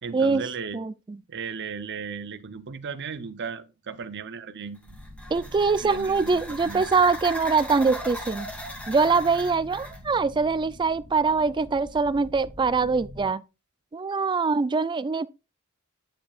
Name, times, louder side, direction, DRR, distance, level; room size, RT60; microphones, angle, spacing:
voice 1, 0.0-0.8 1.3-5.0 5.8-6.9, right 5 dB, 55° right, 0.7 m, -36 dB
voice 2, 0.7-1.2 5.3-8.5 8.9-13.4 13.9-15.3, right 4 dB, 20° right, 0.3 m, -23 dB
sound 1, 4.8-10.0, equal, 5° left, 1.3 m, -39 dB
sound 2, 4.9-13.3, left 1 dB, 85° right, 2.1 m, -45 dB
9.2 x 7.3 x 2.4 m
head